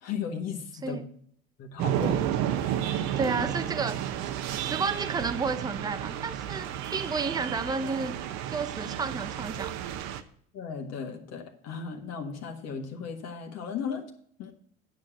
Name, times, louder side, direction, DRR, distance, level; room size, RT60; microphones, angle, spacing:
voice 1, 0.0-1.0 1.6-2.2 2.6-3.1 3.4-3.6 10.5-14.0 14.4-14.5, left 6 dB, 60° left, 1.6 m, -36 dB
sound 1, 1.8-10.2, right 11 dB, 65° right, 0.8 m, -32 dB
voice 2, 3.2-4.1 4.6-8.2 8.5-9.7, right 4 dB, 15° right, 0.7 m, -31 dB
9.3 x 5.1 x 7.4 m
supercardioid pair, 85°, 29 cm